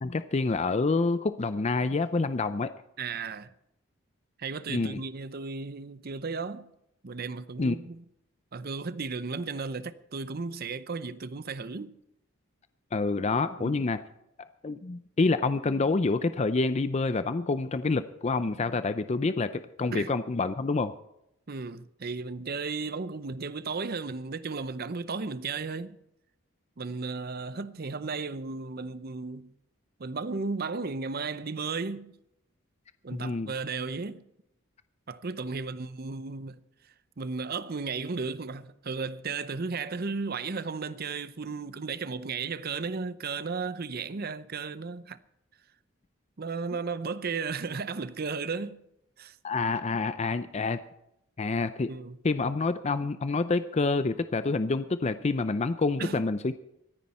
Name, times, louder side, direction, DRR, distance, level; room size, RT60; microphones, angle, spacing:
voice 1, 0.0-2.7 4.7-5.0 7.6-7.8 12.9-14.0 14.6-20.9 33.1-33.5 49.4-50.8 51.4-51.9 52.2-56.5, left 3 dB, 30° left, 0.5 m, -27 dB
voice 2, 3.0-3.5 4.4-6.7 7.0-8.0 8.5-11.9 13.6-13.8 19.9-20.1 21.5-26.0 26.8-29.5 30.0-32.1 33.0-34.2 35.1-36.6 37.2-45.2 46.4-48.8 49.2-49.4 51.9-52.2 56.0-56.2, right 4 dB, 45° right, 0.7 m, -34 dB
24.0 x 9.8 x 4.3 m
head